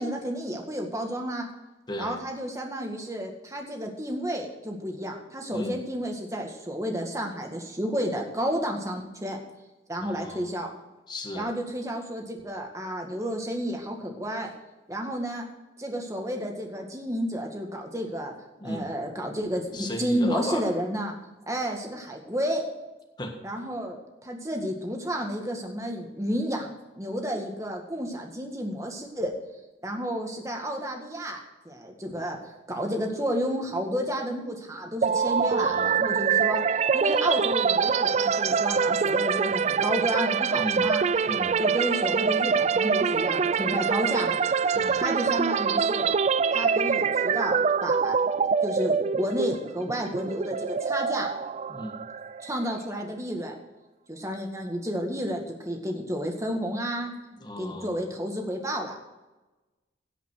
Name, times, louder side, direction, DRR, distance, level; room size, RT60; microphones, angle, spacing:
voice 1, 0.0-1.5 2.0-9.4 9.9-10.7 11.3-14.5 14.9-15.5 15.8-18.3 18.6-21.2 21.5-22.6 23.4-24.0 24.2-29.3 29.8-36.6 36.9-41.0 41.6-44.4 45.0-46.1 46.5-48.2 48.6-51.3 52.4-53.5 54.1-57.1 57.6-59.0, equal, 15° right, 1 dB, 1.9 m, -31 dB
voice 2, 10.0-10.5 11.1-11.5 18.6-18.9 19.7-20.6 23.2-23.7 35.4-35.9 40.6-40.9 41.2-41.5 44.7-45.0 51.7-52.0 57.4-58.0, left 1 dB, 25° left, 3 dB, 1.5 m, -35 dB
sound 1, 35.0-52.8, right 6 dB, 35° right, 0.3 m, -25 dB
17.0 x 5.8 x 6.3 m, 1.1 s
head